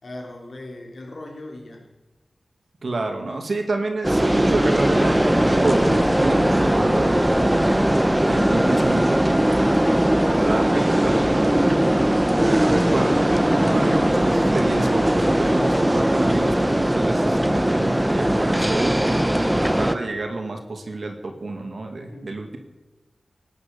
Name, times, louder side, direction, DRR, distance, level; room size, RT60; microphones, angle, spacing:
voice 1, 0.0-1.9 22.0-22.4, left 1 dB, 65° left, 0 dB, 3.6 m, -38 dB
voice 2, 2.8-7.8 8.3-9.8 10.3-11.9 12.3-13.2 13.5-22.6, right 2 dB, 65° right, 4 dB, 2.2 m, -29 dB
sound 1, 4.0-20.0, right 1 dB, 10° right, 0.9 m, -19 dB
18.0 x 9.5 x 6.9 m, 1.2 s
wide cardioid pair, 85°, 0 cm